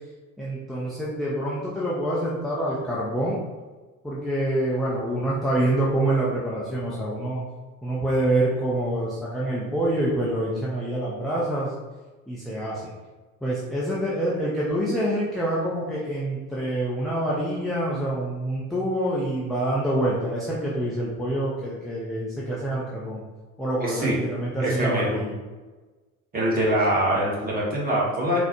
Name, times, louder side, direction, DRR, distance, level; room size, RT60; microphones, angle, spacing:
voice 1, 0.4-3.4 4.0-7.4 7.8-11.7 12.3-12.8 13.4-23.2 23.6-25.4, right 1 dB, ahead, -7 dB, 0.5 m, -26 dB
voice 2, 23.8-24.1 24.6-25.2 26.3-28.4, right 1 dB, 20° right, -5 dB, 1.1 m, -24 dB
3.7 x 2.0 x 2.9 m, 1.2 s
figure-of-eight pair, 65°, 43 cm